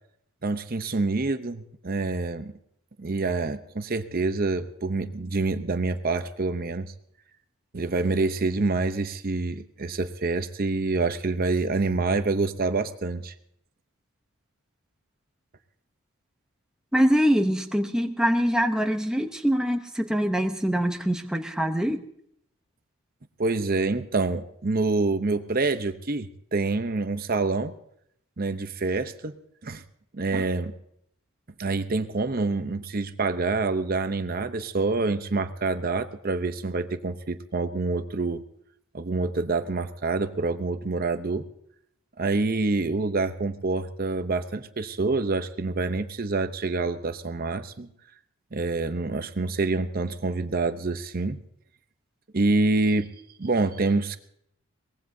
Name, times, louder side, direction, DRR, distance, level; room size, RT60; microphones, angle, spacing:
voice 1, 0.4-2.5 3.0-6.9 7.7-13.3 23.4-27.7 28.4-29.4 29.6-29.8 30.1-30.7 31.6-38.4 38.9-41.5 42.2-47.9 48.5-51.4 52.3-53.1 53.4-54.2, right 3 dB, 40° right, 9 dB, 0.7 m, -27 dB
voice 2, 16.9-22.0, equal, 5° right, 4 dB, 0.8 m, -24 dB
23.0 x 19.5 x 2.7 m, 0.71 s
head